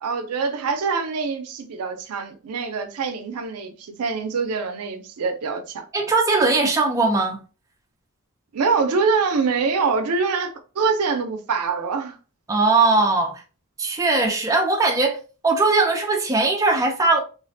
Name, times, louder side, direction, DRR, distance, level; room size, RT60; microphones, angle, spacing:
voice 1, 0.0-5.9 8.5-12.2, right 4 dB, 75° right, 0.4 m, -24 dB
voice 2, 5.9-7.4 12.5-13.4 13.8-17.2, right 3 dB, 15° right, 0.4 m, -20 dB
2.4 x 2.1 x 2.6 m
head